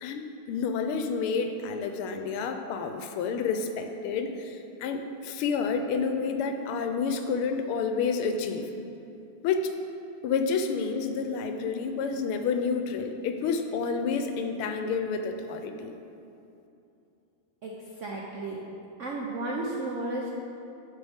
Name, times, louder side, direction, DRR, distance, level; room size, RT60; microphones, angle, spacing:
voice 1, 0.0-8.7 9.4-9.7 10.2-15.9, left 5 dB, 90° left, 6 dB, 1.5 m, -29 dB
voice 2, 17.6-18.6 19.0-20.3, right 2 dB, 85° right, -2 dB, 0.6 m, -33 dB
10.0 x 6.7 x 3.5 m, 2.7 s
omnidirectional pair, 2.3 m